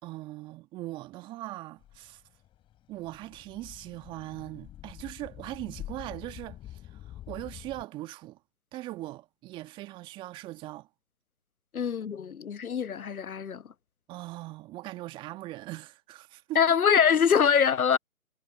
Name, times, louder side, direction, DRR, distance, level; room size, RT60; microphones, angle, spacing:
voice 1, 0.0-2.2 2.9-8.4 8.7-10.9 14.1-16.6, right 17 dB, 10° right, 1.9 m, -40 dB
sound 1, 1.8-7.8, left 12 dB, 10° left, 6.2 m, -46 dB
voice 2, 11.7-13.7 16.5-18.0, left 7 dB, 85° left, 0.7 m, -24 dB
figure-of-eight pair, 145°, 42 cm